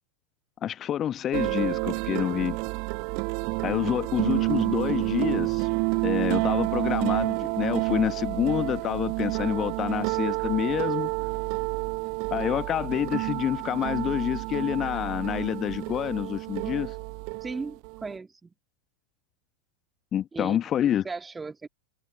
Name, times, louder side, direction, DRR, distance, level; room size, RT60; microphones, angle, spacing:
voice 1, 0.6-2.6 3.6-5.7 6.0-11.1 12.3-17.0 20.1-21.1, left 10 dB, 30° left, 1.0 m, -28 dB
sound 1, 1.3-18.1, right 38 dB, 45° right, 0.9 m, -29 dB
voice 2, 17.4-18.5 20.3-20.6 21.0-21.7, right 4 dB, 10° right, 1.8 m, -36 dB
figure-of-eight pair, 90°, 0 cm